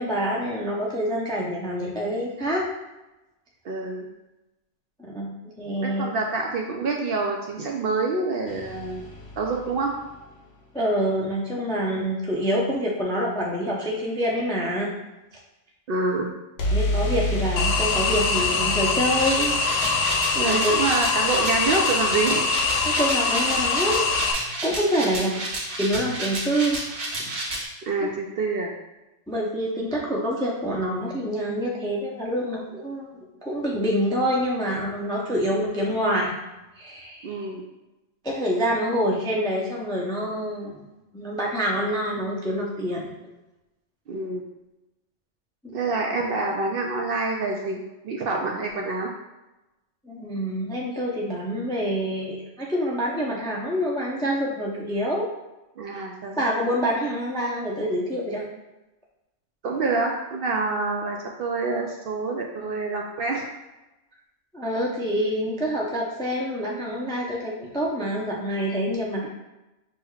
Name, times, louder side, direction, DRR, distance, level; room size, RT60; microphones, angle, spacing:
voice 1, 0.0-2.7 5.0-6.1 10.7-14.9 16.7-19.6 20.3-20.7 22.8-24.1 24.6-25.4 25.8-27.1 28.0-28.1 29.3-36.4 36.8-37.4 38.2-40.8 41.1-43.1 45.6-45.7 50.1-55.3 55.9-56.0 56.4-58.4 64.5-69.3, equal, 5° left, -3 dB, 0.3 m, -26 dB
voice 2, 3.6-4.1 5.8-9.0 9.4-9.9 15.9-16.3 20.4-22.4 23.3-23.4 25.0-25.4 27.2-27.3 27.9-28.7 37.2-37.6 44.1-44.4 45.7-49.1 55.8-56.5 59.6-63.5, right 3 dB, 60° right, 1 dB, 0.6 m, -27 dB
sound 1, 8.5-10.5 16.6-22.4, left 1 dB, 60° left, 1.0 m, -31 dB
sound 2, 17.6-24.3, left 4 dB, 90° left, 0.9 m, -24 dB
sound 3, 19.1-27.6, right 1 dB, 80° right, 1.4 m, -31 dB
6.0 x 3.1 x 2.3 m, 1.0 s
omnidirectional pair, 1.3 m